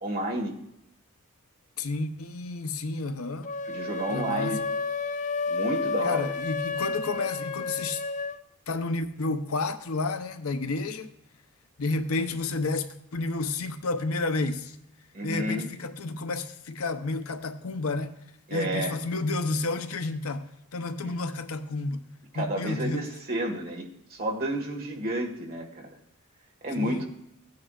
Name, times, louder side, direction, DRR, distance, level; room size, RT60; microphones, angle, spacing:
voice 1, 0.0-0.5 3.7-4.6 5.5-6.3 15.1-15.7 18.5-18.9 21.0-21.1 22.3-26.0 26.6-27.0, right 1 dB, 45° right, 1.7 m, -31 dB
voice 2, 1.8-3.5 4.1-4.7 6.0-8.0 8.7-11.1 11.8-14.8 15.2-18.2 18.5-22.0 22.3-23.1 26.7-27.0, left 3 dB, 85° left, 0.8 m, -31 dB
sound 1, 3.4-8.4, left 4 dB, 35° left, 0.4 m, -31 dB
15.5 x 9.5 x 2.4 m
head